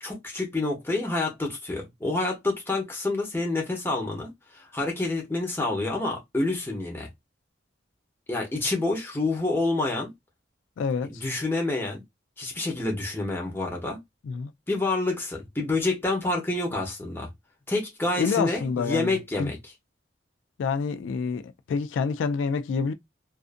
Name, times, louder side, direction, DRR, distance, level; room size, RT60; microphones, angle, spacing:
voice 1, 0.0-7.1 8.3-10.1 11.1-12.0 12.4-14.0 14.7-17.3 17.7-19.6, left 2 dB, 15° left, 0.8 m, -28 dB
voice 2, 10.8-11.2 14.2-14.5 18.2-19.5 20.6-22.9, left 5 dB, 90° left, 0.3 m, -28 dB
2.5 x 2.4 x 2.4 m
head